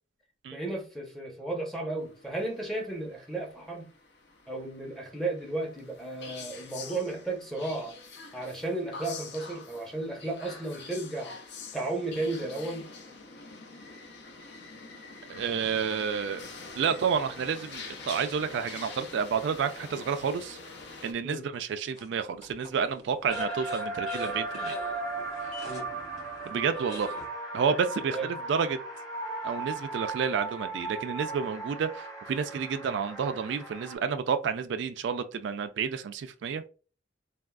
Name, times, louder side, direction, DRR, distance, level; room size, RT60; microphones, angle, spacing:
voice 1, 0.5-3.9 4.5-7.9 8.3-11.3 11.7-12.9 21.2-21.4 25.7-25.9 28.1-28.3, right 2 dB, ahead, 0.6 m, -34 dB
sound 1, 2.0-21.1, left 4 dB, 65° left, 0.5 m, -46 dB
voice 2, 15.3-16.5 16.8-20.6 21.0-24.7 26.4-27.1 27.5-28.8 29.4-36.6, right 6 dB, 70° right, 0.3 m, -30 dB
sound 2, 16.4-17.4 18.0-18.1 21.9-27.3, left 1 dB, 40° left, 1.5 m, -46 dB
sound 3, 23.3-34.0, right 2 dB, 20° left, 1.1 m, -37 dB
3.5 x 2.3 x 2.2 m
head